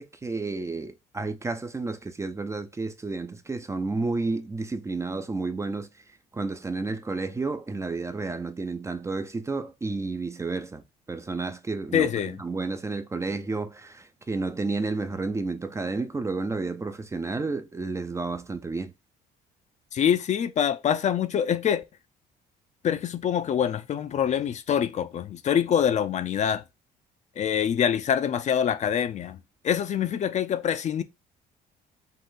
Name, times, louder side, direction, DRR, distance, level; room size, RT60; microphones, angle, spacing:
voice 1, 0.0-5.9 6.3-10.8 11.1-18.9, right 3 dB, 15° right, 0.5 m, -31 dB
voice 2, 11.9-12.4 19.9-21.8 22.8-26.6 27.4-29.4 29.6-31.0, left 9 dB, 45° left, 0.5 m, -25 dB
5.4 x 2.5 x 3.8 m
cardioid pair, 110°, 17 cm